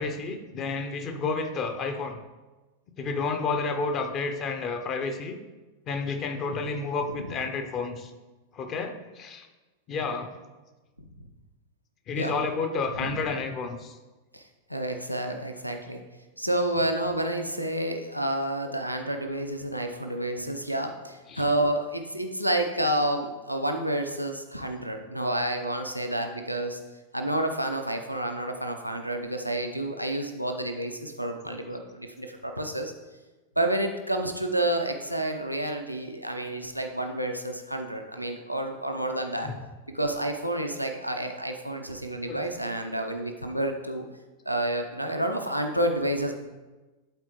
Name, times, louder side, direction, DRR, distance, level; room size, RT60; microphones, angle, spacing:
voice 1, 0.0-2.2 3.0-5.4 5.9-8.1 8.5-9.5 9.9-10.3 12.1-14.0 21.3-21.4 39.4-39.5 42.3-42.4, left 4 dB, 35° left, 6 dB, 0.7 m, -30 dB
voice 2, 7.1-7.5 11.0-11.1 12.2-12.3 12.9-13.4 14.3-14.4 14.7-16.0 16.4-26.8 27.1-32.9 33.6-39.5 39.9-44.0 44.5-46.3, right 1 dB, 90° right, 4 dB, 0.6 m, -29 dB
11.5 x 4.1 x 3.1 m, 1.2 s
figure-of-eight pair, 90°, 0 cm